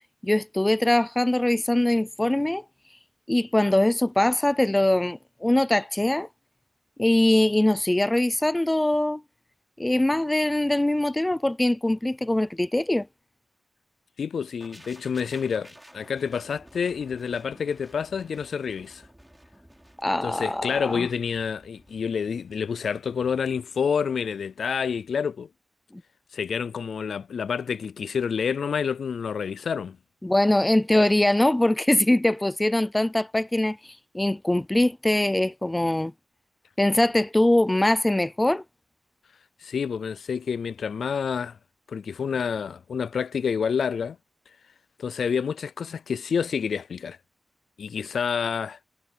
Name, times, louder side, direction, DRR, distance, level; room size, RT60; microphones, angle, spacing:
voice 1, 0.2-2.6 3.3-6.3 7.0-9.2 9.8-13.1 20.0-21.1 30.2-33.8 34.1-36.1 36.8-38.6, left 1 dB, 10° left, 0.4 m, -22 dB
voice 2, 14.2-19.0 20.2-25.5 26.3-30.0 39.6-41.6 41.9-44.2 45.0-47.2 47.8-48.8, left 6 dB, 85° left, 0.4 m, -28 dB
sound 1, 14.6-24.5 24.8-25.0, right 1 dB, 5° right, 6.7 m, -53 dB
wide cardioid pair, 160°, 0 cm